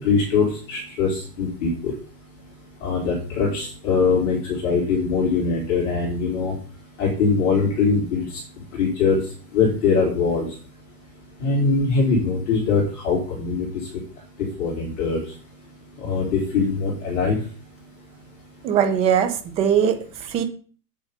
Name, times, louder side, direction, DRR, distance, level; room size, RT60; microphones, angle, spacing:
voice 1, 0.0-1.9 2.8-6.5 7.0-8.3 8.8-9.2 9.5-10.5 11.4-13.7 14.6-15.2 16.0-17.4, left 4 dB, 45° left, 3.9 m, -22 dB
voice 2, 18.6-20.4, right 8 dB, 15° right, 0.7 m, -21 dB
8.7 x 7.3 x 5.3 m
hypercardioid pair, 155°, 49 cm